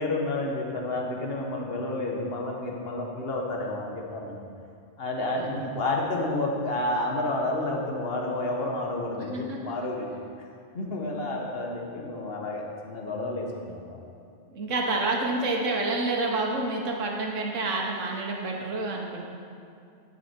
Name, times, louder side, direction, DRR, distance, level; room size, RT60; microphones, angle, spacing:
voice 1, 0.0-4.4 5.0-10.1 10.7-14.0, left 2 dB, 50° left, 0 dB, 1.3 m, -30 dB
voice 2, 5.3-5.7 9.3-9.7 14.5-19.2, right 2 dB, 75° right, 0 dB, 1.4 m, -28 dB
11.0 x 5.8 x 4.4 m, 2.4 s
omnidirectional pair, 1.3 m